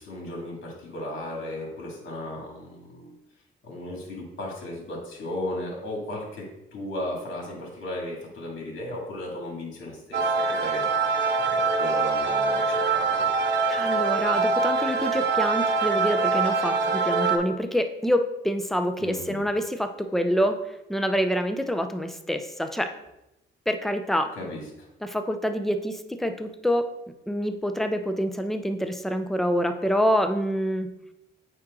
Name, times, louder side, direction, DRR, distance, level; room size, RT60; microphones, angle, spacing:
voice 1, 0.0-3.1 3.6-13.3 19.0-19.4 24.3-24.9, left 1 dB, 70° left, -1 dB, 2.2 m, -36 dB
sound 1, 10.1-17.4, right 4 dB, 60° right, 0.7 m, -24 dB
voice 2, 13.7-20.6 20.9-22.9 23.7-24.3 25.0-26.9 27.3-30.9, equal, ahead, 7 dB, 0.5 m, -26 dB
8.6 x 3.0 x 3.7 m, 0.89 s
cardioid pair, 90°, 20 cm